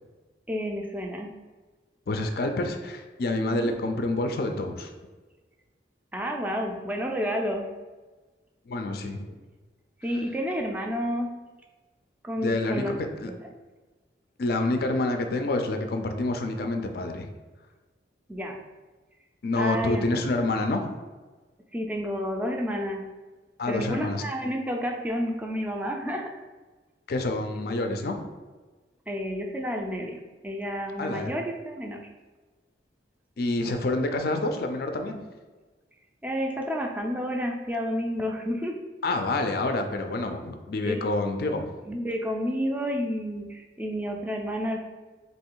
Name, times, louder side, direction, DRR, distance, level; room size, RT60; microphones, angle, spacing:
voice 1, 0.5-1.3 3.4-3.7 6.1-7.7 10.0-11.3 12.2-13.4 18.3-18.6 19.6-20.0 21.7-23.0 23.7-26.3 29.1-32.0 36.2-38.8 40.8-41.0 41.9-44.8, equal, 10° right, 2 dB, 0.4 m, -30 dB
voice 2, 2.1-4.9 8.7-9.3 12.4-12.9 13.2-13.3 14.4-17.3 19.4-20.8 23.6-24.2 27.1-28.2 31.0-31.3 33.4-35.2 39.0-41.7, left 2 dB, 55° left, 5 dB, 0.4 m, -27 dB
3.2 x 2.9 x 4.5 m, 1.3 s
head